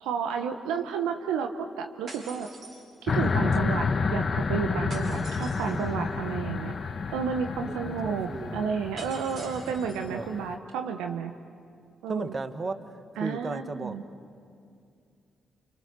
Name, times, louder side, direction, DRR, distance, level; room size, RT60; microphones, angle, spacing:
voice 1, 0.0-2.5 3.0-6.7 7.1-11.3 12.0-12.3 13.2-14.0, right 6 dB, 80° right, 6 dB, 1.0 m, -31 dB
sound 1, 2.1-3.4 4.9-5.9 9.0-10.1, right 2 dB, 60° right, 6.2 m, -45 dB
sound 2, 3.1-10.5, left 5 dB, 50° left, 1.2 m, -30 dB
Wind instrument woodwind instrument, 4.0-8.7, left 3 dB, 90° left, 1.9 m, -51 dB
voice 2, 4.7-6.1 7.7-8.8 10.1-10.3 12.1-14.0, right 3 dB, 40° right, 10 dB, 1.6 m, -37 dB
29.5 x 26.5 x 6.7 m, 2.4 s
hypercardioid pair, 40°, 0 cm